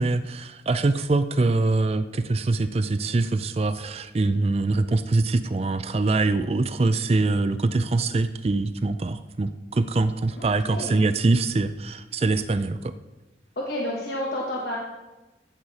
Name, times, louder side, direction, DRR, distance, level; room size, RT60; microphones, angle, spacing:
voice 1, 0.0-12.9, right 3 dB, 35° right, 12 dB, 0.4 m, -24 dB
voice 2, 10.4-11.1 13.6-14.8, left 1 dB, 65° left, -3 dB, 1.3 m, -30 dB
15.0 x 6.5 x 4.2 m, 1.1 s
head